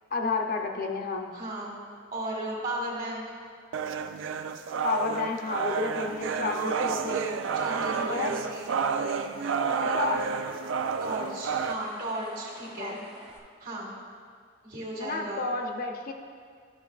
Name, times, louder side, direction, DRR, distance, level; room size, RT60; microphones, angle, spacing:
voice 1, 0.1-1.3 4.8-7.4 8.1-8.4 9.9-10.2 12.8-12.9 15.0-16.1, left 4 dB, 45° left, 2 dB, 0.5 m, -31 dB
voice 2, 1.3-1.7 2.1-3.2 7.5-8.7 9.6-10.2 11.0-13.0 13.6-13.9 14.6-15.4, right 1 dB, 45° right, -3 dB, 1.8 m, -35 dB
sound 1, 3.7-11.7, right 6 dB, 65° right, 0.3 m, -30 dB
sound 2, 4.8-13.4, right 1 dB, 25° right, 1.0 m, -48 dB
12.0 x 5.7 x 2.4 m, 2.1 s
head